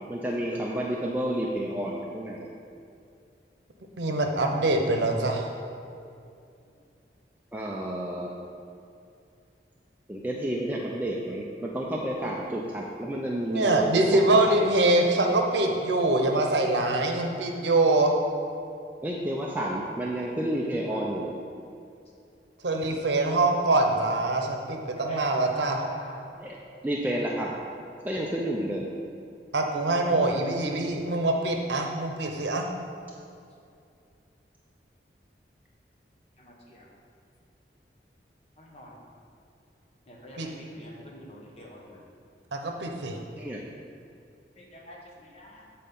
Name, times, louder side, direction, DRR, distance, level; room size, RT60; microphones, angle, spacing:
voice 1, 0.0-2.5 7.5-8.3 10.1-14.2 14.5-14.7 19.0-21.3 26.4-26.6 26.8-27.5 28.0-28.9 43.4-43.6, right 1 dB, 10° right, -3 dB, 0.5 m, -30 dB
voice 2, 4.0-5.6 13.5-18.1 22.6-25.8 29.5-32.7 40.4-40.5 42.5-43.2, right 2 dB, 85° right, 3 dB, 0.8 m, -24 dB
voice 3, 24.9-26.1 30.0-30.3 36.4-36.9 38.6-39.0 40.1-42.0 44.6-45.6, left 1 dB, 35° left, -2 dB, 1.1 m, -46 dB
7.7 x 4.2 x 5.3 m, 2.5 s
head